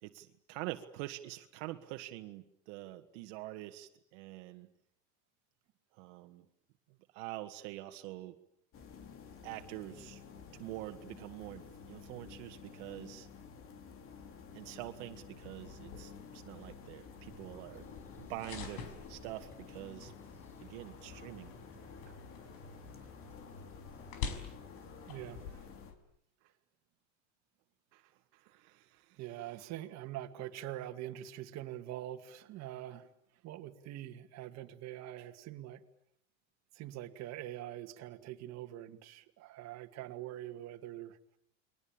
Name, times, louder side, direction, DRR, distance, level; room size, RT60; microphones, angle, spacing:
voice 1, 0.0-4.7 5.9-6.5 7.1-8.4 9.4-10.2 10.6-13.3 14.5-17.9 18.2-20.1 20.6-21.5 22.1-22.2 27.9-29.2, right 16 dB, 70° right, 6 dB, 1.9 m, -46 dB
sound 1, 8.7-25.9, left 5 dB, 35° left, 3.1 m, -52 dB
sound 2, 15.4-25.9, left 6 dB, 70° left, 5.7 m, -48 dB
sound 3, 17.2-25.6, equal, 5° left, 3.9 m, -61 dB
voice 2, 25.1-25.4 29.2-33.1 33.4-35.8 36.7-41.2, right 13 dB, 45° right, 5 dB, 2.3 m, -44 dB
30.0 x 22.5 x 8.9 m, 0.71 s
cardioid pair, 150°, 37 cm